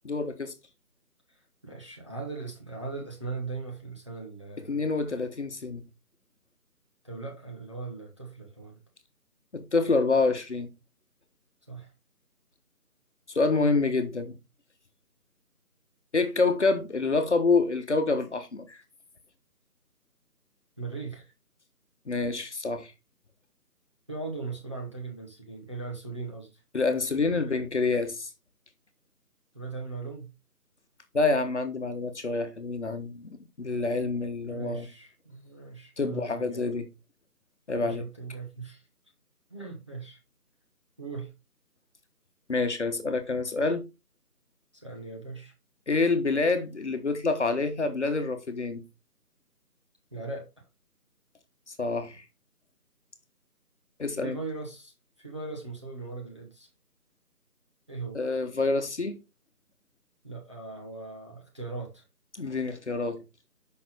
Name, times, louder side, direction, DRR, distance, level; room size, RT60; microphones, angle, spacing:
voice 1, 0.0-0.5 4.7-5.8 9.5-10.7 13.3-14.3 16.1-18.8 22.1-22.9 26.7-28.3 31.1-34.9 36.0-36.9 37.7-38.0 42.5-43.9 45.9-48.8 51.7-52.2 54.0-54.4 58.1-59.2 62.4-63.2, left 3 dB, 45° left, 1.2 m, -27 dB
voice 2, 1.3-4.8 7.0-8.8 11.7-11.9 20.8-21.3 24.1-26.6 27.2-27.6 29.5-30.3 34.4-36.7 37.8-38.8 39.5-40.2 41.0-41.3 44.7-45.5 50.1-50.5 54.2-56.7 57.9-58.2 60.2-62.0, right 4 dB, 20° right, 1.0 m, -39 dB
6.5 x 5.9 x 3.8 m
figure-of-eight pair, 165°, 47 cm